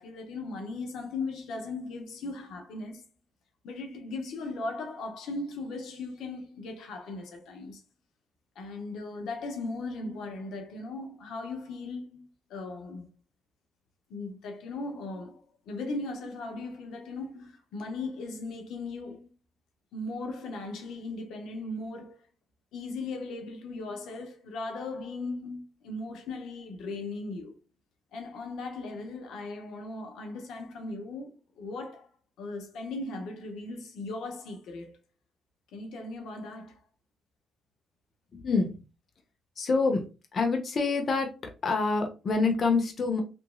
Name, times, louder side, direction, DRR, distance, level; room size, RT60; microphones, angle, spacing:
voice 1, 0.0-3.0 3.6-7.8 8.6-13.1 14.1-19.3 19.9-22.2 22.7-27.6 28.1-32.1 32.4-34.9 35.7-36.8, left 3 dB, 80° left, 0.7 m, -38 dB
voice 2, 38.3-38.8 39.6-40.0 40.3-41.3 41.6-43.2, left 4 dB, 45° left, 0.6 m, -26 dB
2.9 x 2.6 x 2.2 m
cardioid pair, 90°, 0 cm